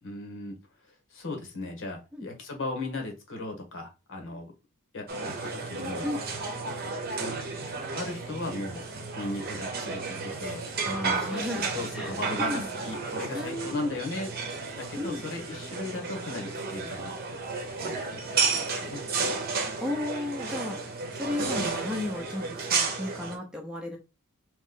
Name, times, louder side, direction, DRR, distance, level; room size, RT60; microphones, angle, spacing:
voice 1, 0.0-0.6 0.8-4.5 4.9-6.1 7.2-7.3 7.9-8.8 9.2-10.6 11.0-14.3 14.8-17.4 17.8-19.1, left 2 dB, 60° left, 1.2 m, -37 dB
sound 1, 5.1-23.4, right 4 dB, 45° right, 0.8 m, -32 dB
voice 2, 10.8-11.6 11.9-12.7 13.3-14.0 15.0-15.2 19.8-24.0, left 1 dB, 5° right, 0.7 m, -34 dB
3.1 x 3.0 x 3.7 m
head